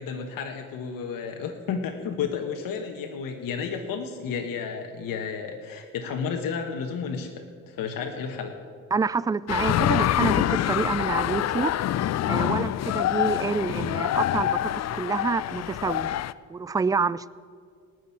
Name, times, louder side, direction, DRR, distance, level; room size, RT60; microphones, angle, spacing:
voice 1, 0.0-8.6, left 6 dB, 65° left, 4 dB, 1.3 m, -32 dB
voice 2, 8.9-11.8 12.3-16.1 16.5-17.3, right 4 dB, 10° right, 19 dB, 0.3 m, -27 dB
sound 1, 9.5-16.3, left 12 dB, 50° left, 0.5 m, -25 dB
18.5 x 6.3 x 8.6 m, 2.2 s
supercardioid pair, 55°, 36 cm